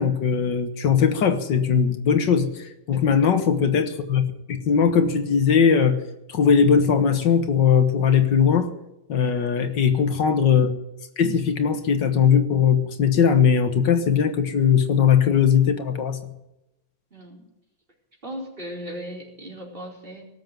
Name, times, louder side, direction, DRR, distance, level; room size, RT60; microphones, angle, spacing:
voice 1, 0.0-4.2 4.5-6.0 6.3-8.7 9.1-10.7 11.2-16.2, left 7 dB, 80° left, 9 dB, 2.0 m, -19 dB
voice 2, 9.4-10.0 17.1-17.5 18.2-20.2, equal, 30° right, -1 dB, 4.5 m, -38 dB
18.5 x 7.7 x 9.2 m, 0.91 s
omnidirectional pair, 1.9 m